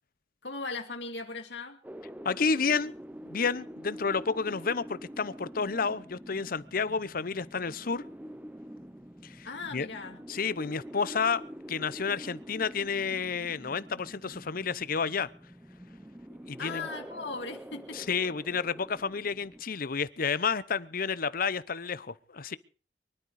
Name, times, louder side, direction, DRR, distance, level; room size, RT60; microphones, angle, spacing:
voice 1, 0.4-1.8 9.4-10.2 16.6-18.0, left 3 dB, 85° left, 2.5 m, -38 dB
sound 1, 1.8-19.6, equal, 10° right, 0.7 m, -46 dB
voice 2, 2.2-2.9 3.3-8.0 9.2-9.5 9.7-9.9 10.3-11.4 11.7-15.3 16.5-16.9 17.9-22.6, left 5 dB, 55° left, 0.8 m, -30 dB
24.0 x 12.0 x 4.9 m
head